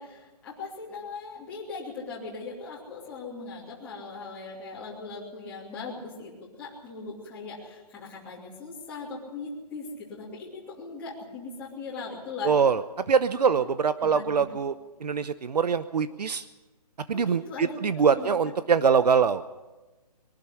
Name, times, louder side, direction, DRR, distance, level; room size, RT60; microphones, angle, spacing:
voice 1, 0.0-6.3 6.6-12.5 13.4-13.5 14.0-14.5 17.1-17.8 18.1-18.3, left 4 dB, 5° left, -8 dB, 2.8 m, -39 dB
voice 2, 12.4-12.8 13.1-14.7 15.0-16.5 17.1-19.4, right 6 dB, 80° right, 14 dB, 0.8 m, -23 dB
22.0 x 12.0 x 9.9 m, 1.2 s
hypercardioid pair, 175°, 20 cm